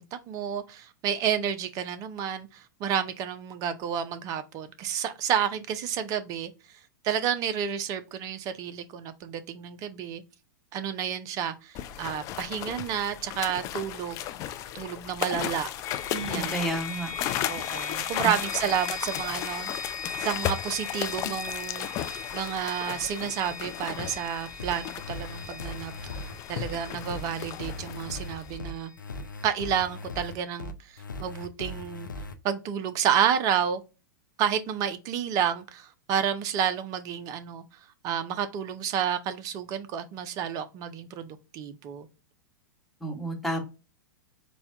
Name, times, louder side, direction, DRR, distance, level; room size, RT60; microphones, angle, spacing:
voice 1, 0.0-6.5 7.0-10.2 10.7-14.2 14.7-15.7 16.3-16.5 17.5-19.7 20.2-25.9 26.5-28.9 29.4-32.1 32.4-33.8 34.4-37.6 38.0-42.1, right 8 dB, 35° right, 0.6 m, -30 dB
sound 1, 11.7-28.6, left 11 dB, 35° left, 0.4 m, -35 dB
sound 2, 15.8-29.6, left 4 dB, 60° left, 1.3 m, -40 dB
voice 2, 16.1-17.1 18.2-18.3 43.0-43.6, right 2 dB, ahead, 1.2 m, -31 dB
sound 3, 24.6-32.4, left 2 dB, 85° left, 0.5 m, -39 dB
4.2 x 2.3 x 3.3 m
figure-of-eight pair, 105°, 10 cm